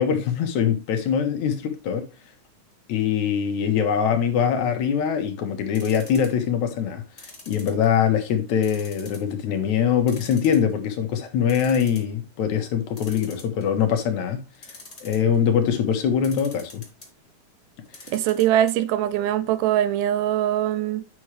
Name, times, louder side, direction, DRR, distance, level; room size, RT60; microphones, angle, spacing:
voice 1, 0.0-2.1 2.9-14.5 15.0-16.8, left 8 dB, 70° left, 2.3 m, -23 dB
sound 1, 5.7-6.5 7.2-8.1 8.6-9.3 9.6-9.7 10.1-10.9 11.2-11.3 11.5-12.1 13.0-13.8 14.5-15.4 16.2-17.1 17.8-18.7 19.0-19.1 19.4-19.5, left 2 dB, 15° left, 1.5 m, -44 dB
voice 2, 18.1-21.0, right 12 dB, 85° right, 2.1 m, -22 dB
8.4 x 6.2 x 3.2 m
omnidirectional pair, 3.7 m